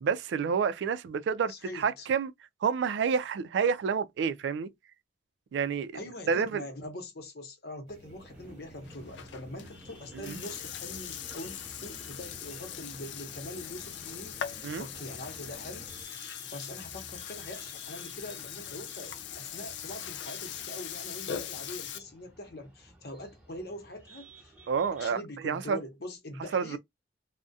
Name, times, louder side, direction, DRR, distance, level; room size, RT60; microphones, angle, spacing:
voice 1, 0.0-2.3 2.6-4.7 5.5-6.0 6.3-6.6 10.2-10.4 14.6-14.8 24.7-25.8 26.5-26.8, right 6 dB, 90° right, 0.3 m, -29 dB
voice 2, 1.5-2.1 5.9-15.9 16.5-24.5 24.9-26.8, left 1 dB, 65° left, 0.8 m, -43 dB
sound 1, 7.9-16.0, equal, 45° right, 0.9 m, -54 dB
sound 2, 8.3-25.1, right 1 dB, 5° right, 0.6 m, -54 dB
Burping eructation, 8.8-22.0, left 9 dB, 90° left, 0.4 m, -41 dB
2.3 x 2.1 x 2.6 m
head